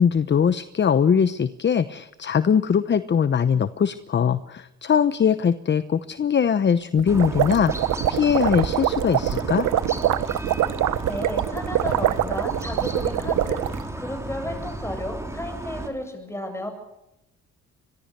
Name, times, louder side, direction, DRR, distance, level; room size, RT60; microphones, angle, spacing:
voice 1, 0.0-7.7 8.1-9.7, left 7 dB, 35° left, 13 dB, 0.9 m, -21 dB
sound 1, 7.0-13.8, right 12 dB, 75° right, 1.1 m, -24 dB
sound 2, 7.1-15.9, right 1 dB, 10° right, 4.0 m, -34 dB
voice 2, 11.1-16.7, equal, 10° left, 6 dB, 7.9 m, -33 dB
24.5 x 21.5 x 6.8 m, 0.89 s
cardioid pair, 90°, 30 cm